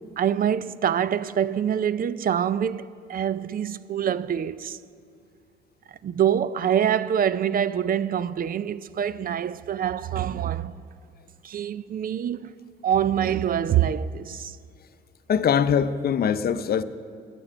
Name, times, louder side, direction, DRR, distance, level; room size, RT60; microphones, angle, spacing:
voice 1, 0.0-4.8 6.0-10.7 11.4-12.5 12.8-14.6, right 9 dB, 45° right, 0.4 m, -25 dB
voice 2, 15.3-16.8, left 7 dB, 50° left, 0.6 m, -22 dB
10.0 x 8.7 x 9.8 m
cardioid pair, 90°, 20 cm